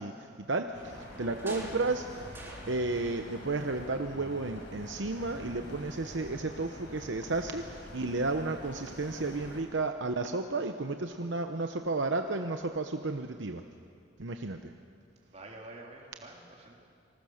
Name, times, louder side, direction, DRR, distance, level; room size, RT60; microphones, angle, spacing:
voice 1, 0.0-13.6 14.2-14.7, right 3 dB, 70° right, 6 dB, 0.9 m, -33 dB
sound 1, 0.7-9.6, left 1 dB, 70° left, 5.5 m, -46 dB
sound 2, 0.8-3.2 3.5-4.6 4.9-5.0, right 1 dB, 15° right, 3.0 m, -47 dB
voice 2, 15.2-16.7, right 2 dB, 35° right, -1 dB, 3.7 m, -48 dB
26.5 x 20.5 x 6.6 m, 2.3 s
head